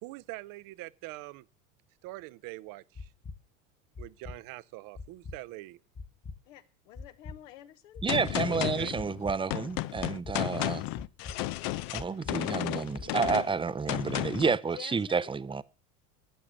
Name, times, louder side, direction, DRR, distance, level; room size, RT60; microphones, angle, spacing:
voice 1, 0.0-1.5 2.0-3.1 4.0-5.8 8.5-9.0, right 20 dB, 55° right, 0.8 m, -43 dB
sound 1, 2.9-3.4 3.9-4.4 4.9-5.4 5.9-6.4 6.9-7.4 7.9-8.4 8.9-9.4 9.9-10.4 10.9-11.4 11.9-12.4 12.9-13.4, left 4 dB, 20° left, 1.3 m, -42 dB
voice 2, 6.4-8.0 8.7-8.9 14.7-15.3, left 13 dB, 70° left, 1.6 m, -49 dB
voice 3, 8.0-10.8 11.9-15.6, right 5 dB, 15° right, 0.7 m, -30 dB
Gunshot gunfire, 8.1-14.6, left 17 dB, 55° left, 0.8 m, -33 dB
13.5 x 8.5 x 6.5 m
hypercardioid pair, 80°, 40 cm